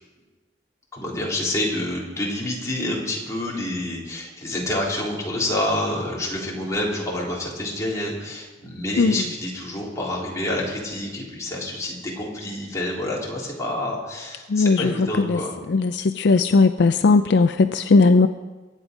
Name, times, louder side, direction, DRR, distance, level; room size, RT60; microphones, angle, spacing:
voice 1, 0.9-15.5, left 1 dB, 15° left, -4 dB, 3.4 m, -28 dB
voice 2, 14.5-15.4 15.7-18.3, left 3 dB, 65° left, 10 dB, 0.5 m, -18 dB
23.0 x 8.9 x 5.2 m, 1.3 s
head